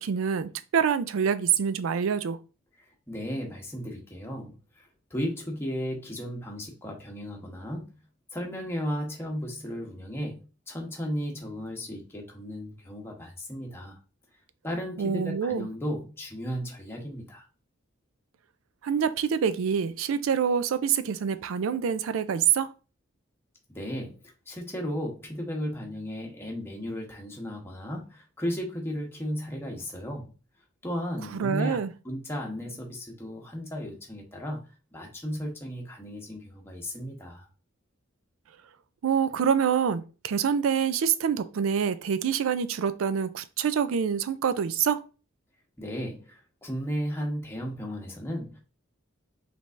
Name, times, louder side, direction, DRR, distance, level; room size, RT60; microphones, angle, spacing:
voice 1, 0.0-2.4 15.0-15.7 18.8-22.7 31.3-31.9 39.0-45.1, right 7 dB, 85° right, 0.4 m, -26 dB
voice 2, 2.8-7.9 8.3-14.0 14.6-17.5 23.7-24.2 24.5-30.3 30.8-31.8 32.0-34.6 34.9-37.5 45.8-48.6, equal, 10° left, 0.9 m, -35 dB
5.2 x 3.3 x 2.5 m
head